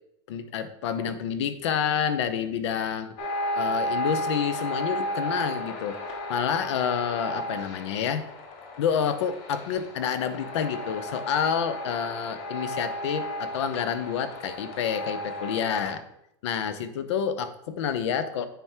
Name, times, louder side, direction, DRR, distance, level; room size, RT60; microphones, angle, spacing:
voice 1, 0.3-3.1 3.6-6.0 6.3-8.2 8.8-16.0 16.4-18.5, left 7 dB, 80° left, 10 dB, 0.8 m, -28 dB
sound 1, 3.2-15.9, equal, 45° left, 1.3 m, -34 dB
9.1 x 3.5 x 4.5 m, 0.80 s
supercardioid pair, 150°, 14 cm